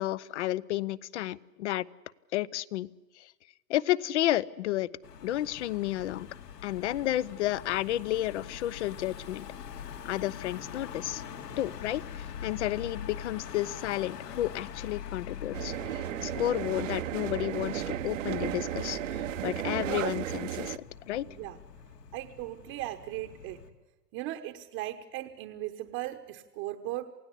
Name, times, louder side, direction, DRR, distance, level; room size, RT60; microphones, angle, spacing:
voice 1, 0.0-1.9 2.3-2.9 3.2-3.3 3.7-4.9 5.2-6.3 6.6-9.5 10.0-11.2 11.6-21.3, left 14 dB, 45° left, 21 dB, 0.7 m, -32 dB
Car passing by / Engine, 5.0-23.7, left 8 dB, 75° left, 2.7 m, -44 dB
sound 1, 15.5-20.8, right 13 dB, 50° right, 0.9 m, -34 dB
voice 2, 21.2-21.6 22.1-23.6 24.1-27.1, right 15 dB, 25° right, 5 dB, 1.0 m, -38 dB
28.0 x 17.0 x 8.4 m, 1.2 s
hypercardioid pair, 140°, 49 cm